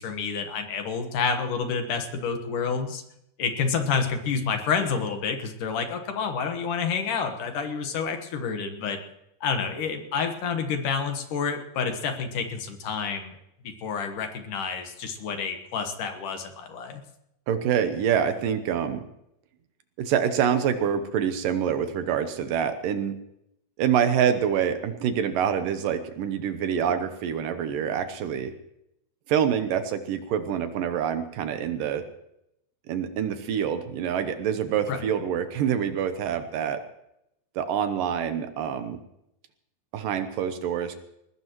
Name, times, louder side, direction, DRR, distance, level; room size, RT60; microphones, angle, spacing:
voice 1, 0.0-3.0 3.4-9.0 9.4-13.4 13.6-17.0 34.9-35.0, left 5 dB, 65° left, 5 dB, 2.7 m, -29 dB
voice 2, 17.5-19.0 20.0-23.1 23.8-28.5 29.3-32.1 32.9-36.8 37.6-39.0 39.9-41.0, right 8 dB, 70° right, 9 dB, 2.4 m, -26 dB
21.0 x 20.0 x 3.1 m, 0.80 s
omnidirectional pair, 4.3 m